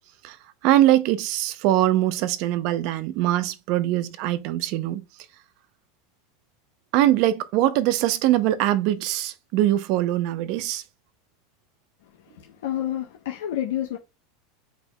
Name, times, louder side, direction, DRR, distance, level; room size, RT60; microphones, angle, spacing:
voice 1, 0.6-5.0 6.9-10.8, right 14 dB, 55° right, 0.6 m, -22 dB
voice 2, 12.2-14.0, left 11 dB, 85° left, 0.9 m, -29 dB
5.0 x 4.6 x 2.2 m
supercardioid pair, 135°, 0 cm